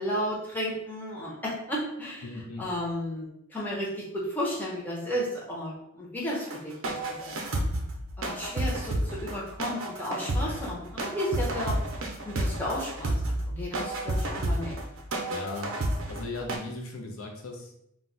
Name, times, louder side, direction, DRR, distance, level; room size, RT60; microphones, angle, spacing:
voice 1, 0.0-2.3 2.6-7.3 8.2-11.8 12.2-14.7, equal, 10° left, -5 dB, 0.6 m, -33 dB
voice 2, 2.2-2.6 15.3-15.7 16.1-17.8, left 2 dB, 80° left, 1 dB, 0.6 m, -37 dB
sound 1, 6.3-16.6, right 1 dB, 65° right, 0.5 m, -31 dB
2.2 x 2.1 x 3.7 m, 0.77 s
head